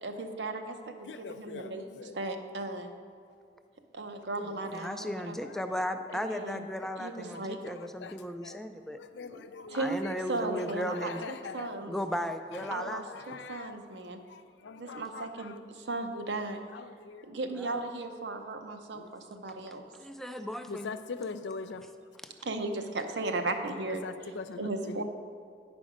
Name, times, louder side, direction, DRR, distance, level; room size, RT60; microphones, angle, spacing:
voice 1, 0.0-2.9 3.9-5.4 6.1-6.6 7.0-7.6 9.7-10.0 10.3-11.9 12.7-14.2 14.8-16.6 17.2-19.8 22.4-24.0 24.6-25.0, right 2 dB, 75° right, 5 dB, 0.7 m, -36 dB
voice 2, 1.1-2.2 4.4-4.5 7.3-8.1 8.4-8.6 9.0-10.1 10.4-11.8 12.6-13.8 14.3-15.6 16.7-17.3 18.9-19.1 20.7-21.9 24.0-25.0, left 4 dB, 90° left, 11 dB, 0.4 m, -43 dB
voice 3, 4.7-9.0 9.7-11.2 11.9-13.0 17.6-17.8 19.9-20.9, equal, ahead, 7 dB, 0.3 m, -36 dB
9.6 x 5.2 x 5.0 m, 2.4 s
head